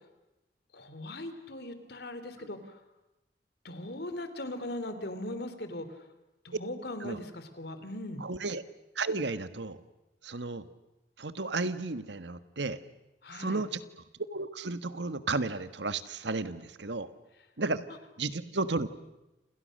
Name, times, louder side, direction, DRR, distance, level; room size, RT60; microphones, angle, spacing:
voice 1, 0.7-2.8 3.6-6.0 6.4-8.2 13.2-13.6, left 1 dB, 65° left, 10 dB, 3.3 m, -39 dB
voice 2, 8.2-8.6 8.9-9.8 10.2-10.6 11.2-12.8 13.3-13.8 14.2-17.1 17.6-17.9 18.2-18.9, right 3 dB, 80° right, 12 dB, 1.5 m, -33 dB
29.0 x 28.0 x 6.6 m, 0.97 s
head